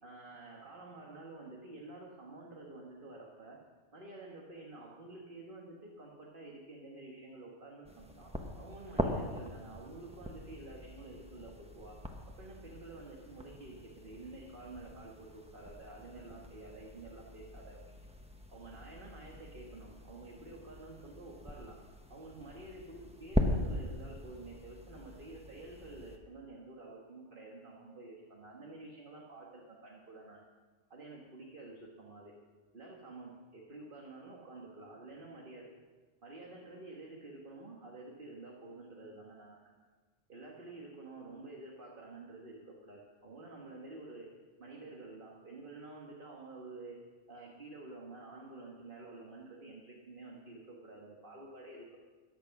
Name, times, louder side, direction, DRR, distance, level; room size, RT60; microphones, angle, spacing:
voice 1, 0.0-3.6 3.9-12.0 12.4-18.1 18.5-21.8 22.1-30.4 30.9-32.3 32.7-35.7 36.2-39.6 40.3-44.3 44.6-47.0 47.3-52.0, right 2 dB, 45° right, -2 dB, 1.8 m, -50 dB
sound 1, 7.8-26.2, equal, 5° right, 1.1 m, -41 dB
15.0 x 11.0 x 5.9 m, 1.4 s
omnidirectional pair, 1.3 m